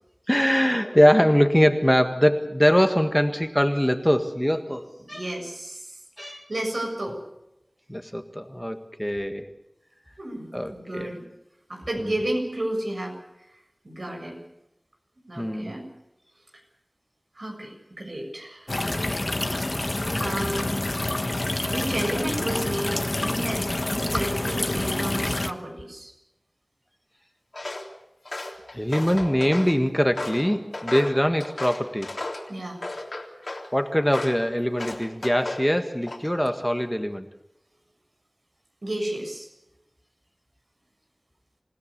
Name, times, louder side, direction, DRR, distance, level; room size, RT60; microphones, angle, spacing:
voice 1, 0.3-5.2 6.2-6.5 7.9-9.5 10.5-11.1 12.0-12.1 15.4-15.7 28.7-32.1 33.7-37.3, equal, 5° left, 7 dB, 1.7 m, -22 dB
voice 2, 5.1-5.9 6.2-7.2 10.2-11.2 11.7-13.2 13.8-14.4 15.3-15.8 17.4-18.9 20.1-20.8 21.7-26.1 32.5-32.8 38.8-39.5, right 1 dB, 80° right, 1 dB, 7.2 m, -32 dB
sound 1, 18.7-25.5, left 2 dB, 50° left, 1.2 m, -27 dB
Walk footsteps, 27.5-27.9 28.3-29.8 30.2-32.5 32.8-33.7 34.1-34.4 34.8-35.7 36.0-36.5, left 2 dB, 80° left, 3.5 m, -34 dB
28.0 x 17.0 x 6.9 m, 0.88 s
wide cardioid pair, 40°, 0 cm